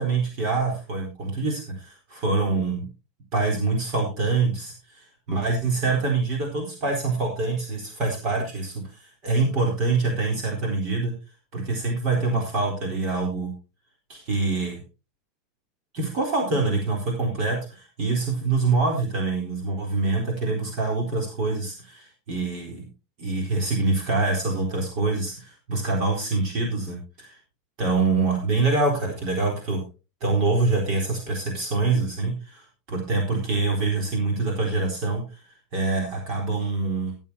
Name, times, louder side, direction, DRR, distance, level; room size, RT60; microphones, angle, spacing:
voice 1, 0.0-2.9 3.3-11.1 11.5-13.5 14.1-14.8 15.9-22.9 23.2-27.4 27.8-29.8 30.2-35.4 35.7-37.2, right 3 dB, 45° right, 1 dB, 4.0 m, -25 dB
22.0 x 7.3 x 2.9 m, 0.31 s
supercardioid pair, 155°, 0 cm